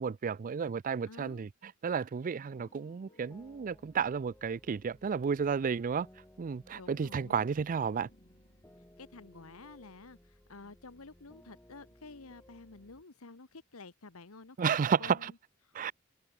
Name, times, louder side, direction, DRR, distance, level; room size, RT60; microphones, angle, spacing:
voice 1, 0.0-6.1 6.4-8.1 14.6-15.3 15.7-15.9, right 6 dB, 40° right, 0.4 m, -32 dB
voice 2, 1.1-1.5 6.7-7.5 9.0-14.7 15.0-15.3, left 3 dB, 80° left, 1.4 m, -50 dB
sound 1, 2.3-4.7 7.1-10.5, left 1 dB, 40° left, 5.6 m, -67 dB
sound 2, 2.5-13.0, equal, 10° left, 6.9 m, -61 dB
open air
head